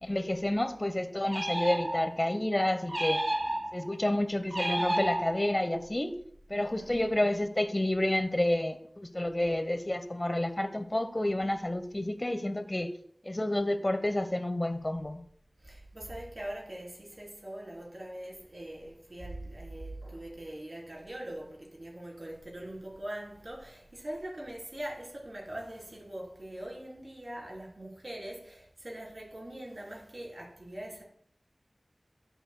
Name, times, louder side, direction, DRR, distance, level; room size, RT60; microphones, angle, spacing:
voice 1, 0.0-3.2 3.7-6.1 6.5-12.9 13.2-15.2, left 1 dB, 30° left, 0.9 m, -29 dB
sound 1, 1.3-2.3 2.9-3.9 4.5-5.7, right 1 dB, 25° right, 0.5 m, -32 dB
voice 2, 6.6-7.0 15.6-31.0, right 1 dB, 50° right, 3.5 m, -42 dB
13.5 x 8.0 x 2.2 m
wide cardioid pair, 60°, 0 cm